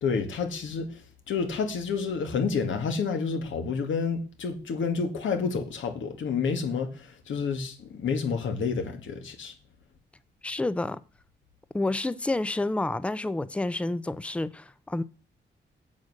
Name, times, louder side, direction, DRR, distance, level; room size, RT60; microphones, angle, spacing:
voice 1, 0.0-9.5, left 5 dB, 85° left, 2.2 m, -29 dB
voice 2, 10.4-11.0 11.7-15.0, left 2 dB, 5° left, 0.5 m, -29 dB
8.5 x 8.0 x 6.5 m
wide cardioid pair, 140°, 20 cm